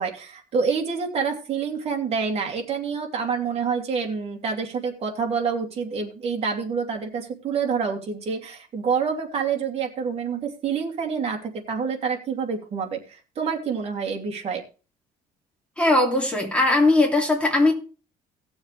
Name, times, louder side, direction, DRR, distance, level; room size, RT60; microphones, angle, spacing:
voice 1, 0.0-14.6, right 6 dB, 40° right, 2.7 m, -27 dB
voice 2, 15.8-17.7, left 2 dB, 5° left, 2.9 m, -19 dB
17.5 x 7.2 x 3.4 m
cardioid pair, 150°, 16 cm